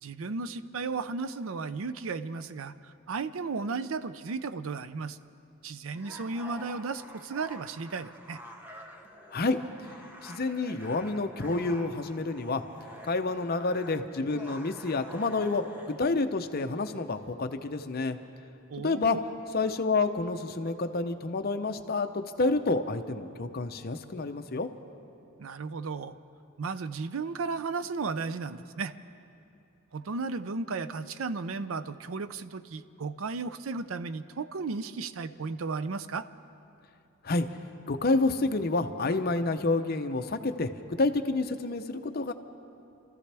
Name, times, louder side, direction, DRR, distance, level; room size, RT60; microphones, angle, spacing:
voice 1, 0.0-5.2 5.6-8.4 18.7-19.2 25.4-26.2 26.6-28.9 29.9-36.3, right 4 dB, 80° right, 13 dB, 0.5 m, -34 dB
sound 1, 5.9-16.1, equal, 10° right, 1.0 m, -48 dB
voice 2, 10.2-12.6 13.0-18.2 18.8-19.2 19.5-24.7 37.2-37.5 37.9-40.7 41.0-42.3, left 3 dB, 45° left, 8 dB, 0.7 m, -29 dB
28.0 x 14.0 x 3.4 m, 2.7 s
head